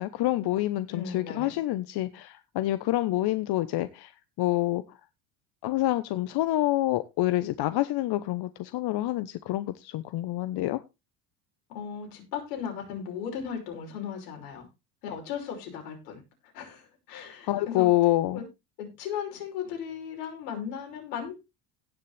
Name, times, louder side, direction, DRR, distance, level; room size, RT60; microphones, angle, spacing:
voice 1, 0.0-4.1 4.4-4.8 5.6-10.8 17.5-18.4, left 16 dB, 55° left, 1.0 m, -27 dB
voice 2, 0.9-1.6 11.7-14.7 15.0-16.2 16.5-17.9 18.3-18.5 18.8-21.3, left 7 dB, 80° left, 5.6 m, -36 dB
17.0 x 6.7 x 3.4 m
hypercardioid pair, 75°, 46 cm